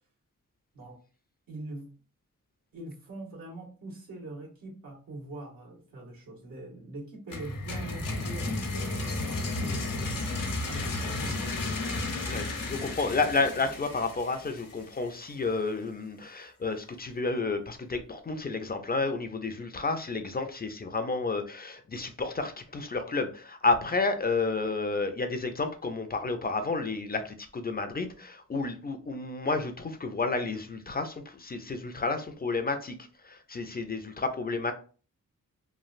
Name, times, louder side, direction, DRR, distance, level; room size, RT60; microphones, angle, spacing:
voice 1, 1.5-1.9 2.7-8.5 8.8-10.3 10.6-11.5, right 2 dB, 90° right, -5 dB, 1.5 m, -43 dB
sound 1, 7.3-15.1, left 2 dB, 75° left, 0.8 m, -33 dB
voice 2, 12.3-33.0 33.2-34.7, left 3 dB, 30° left, 8 dB, 0.4 m, -31 dB
3.1 x 2.4 x 2.4 m, 0.38 s
wide cardioid pair, 80°, 33 cm